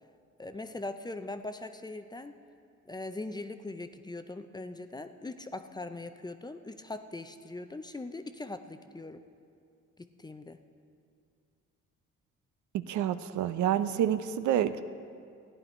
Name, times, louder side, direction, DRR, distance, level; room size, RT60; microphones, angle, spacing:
voice 1, 0.4-2.3 2.9-9.2 10.0-10.6, left 2 dB, 15° left, 9 dB, 0.5 m, -41 dB
voice 2, 12.7-14.8, right 10 dB, 75° right, 12 dB, 0.5 m, -28 dB
14.5 x 10.0 x 4.3 m, 2.4 s
cardioid pair, 90°, 30 cm